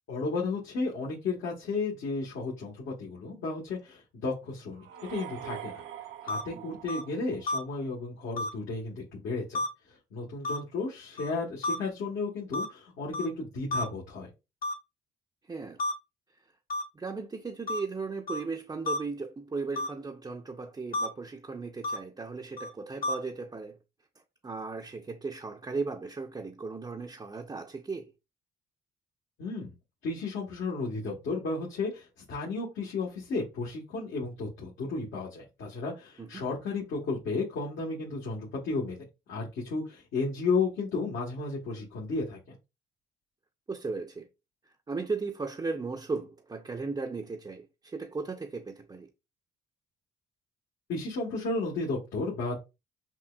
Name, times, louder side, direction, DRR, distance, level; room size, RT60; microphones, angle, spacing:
voice 1, 0.1-5.8 6.2-9.6 10.1-14.3 29.4-29.7 30.0-42.5 50.9-52.6, left 3 dB, 75° left, 1.3 m, -33 dB
sound 1, 4.8-7.8, right 10 dB, 80° right, 0.6 m, -43 dB
sound 2, 6.3-6.4 6.9-7.0 7.5-7.6 8.4-8.5 9.5-9.7 10.4-10.6 11.2-11.3 11.6-11.7 12.5-12.7 13.1-13.3 13.7-13.8 14.6-14.7 15.8-15.9 16.7-16.8 17.7-17.8 18.3-18.4 18.9-19.0 19.8-19.9 20.9-21.1 21.8-22.0 22.6-22.7 23.0-23.1, left 2 dB, 45° left, 0.8 m, -30 dB
voice 2, 15.5-15.8 16.9-23.8 24.4-28.1 36.2-36.4 43.7-44.3 44.9-49.1, right 4 dB, 20° right, 0.5 m, -36 dB
5.8 x 2.3 x 2.3 m
cardioid pair, 90°, 20 cm